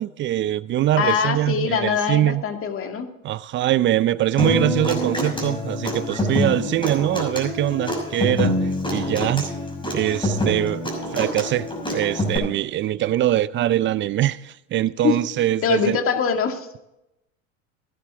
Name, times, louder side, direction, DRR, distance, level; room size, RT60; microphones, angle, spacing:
voice 1, 0.0-2.4 3.2-9.5 9.9-16.0, right 13 dB, 30° right, 0.5 m, -23 dB
voice 2, 1.0-3.1 15.0-15.2 15.6-16.7, left 6 dB, 35° left, 2.2 m, -23 dB
Human voice / Acoustic guitar, 4.4-12.4, left 1 dB, 15° left, 5.9 m, -26 dB
16.5 x 11.5 x 3.6 m
hypercardioid pair, 95°, 39 cm